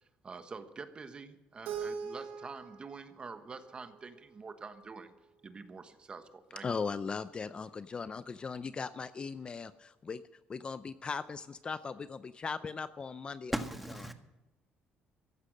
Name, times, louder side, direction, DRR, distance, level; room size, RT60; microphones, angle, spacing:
voice 1, 0.0-5.1 5.4-6.7, right 4 dB, 30° right, 9 dB, 1.2 m, -47 dB
Keyboard (musical), 1.6-4.6, right 6 dB, 85° right, 2.4 m, -43 dB
voice 2, 6.6-10.2 10.5-13.5, left 5 dB, 30° left, 14 dB, 0.5 m, -38 dB
voice 3, 13.5-14.1, right 1 dB, 5° right, 6 dB, 1.5 m, -36 dB
15.0 x 11.5 x 6.5 m, 1.1 s
cardioid pair, 110°, 3 cm